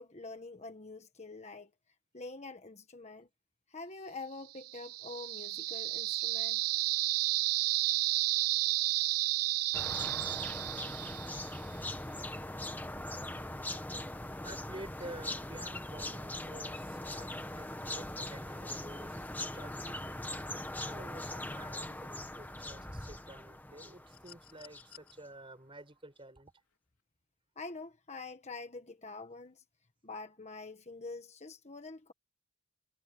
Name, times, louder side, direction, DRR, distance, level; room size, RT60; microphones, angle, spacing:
voice 1, 0.0-1.7 2.1-3.3 3.7-6.6 27.6-29.6 30.0-32.1, left 3 dB, 30° left, 1.4 m, -46 dB
sound 1, 4.6-11.5, right 18 dB, 85° right, 0.4 m, -32 dB
sound 2, 9.7-24.9, left 1 dB, 10° left, 1.4 m, -41 dB
voice 2, 11.3-12.0 13.0-13.3 14.3-20.2 20.8-26.5, right 1 dB, 25° right, 6.2 m, -51 dB
sound 3, 24.1-25.1 26.6-26.8, left 11 dB, 90° left, 4.4 m, -55 dB
head